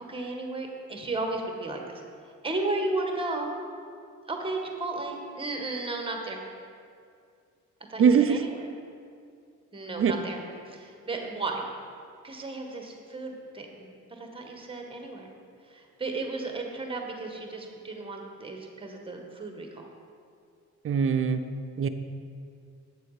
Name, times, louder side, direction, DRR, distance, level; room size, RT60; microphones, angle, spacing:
voice 1, 0.1-3.5 4.3-6.4 7.9-8.7 9.7-11.7 12.2-15.3 15.6-19.9, right 2 dB, 20° right, 2 dB, 1.3 m, -34 dB
voice 2, 8.0-8.4 10.0-10.1 20.8-21.4 21.8-21.9, right 6 dB, 45° right, 9 dB, 0.6 m, -21 dB
8.3 x 6.8 x 4.9 m, 2.3 s
cardioid pair, 90°, 30 cm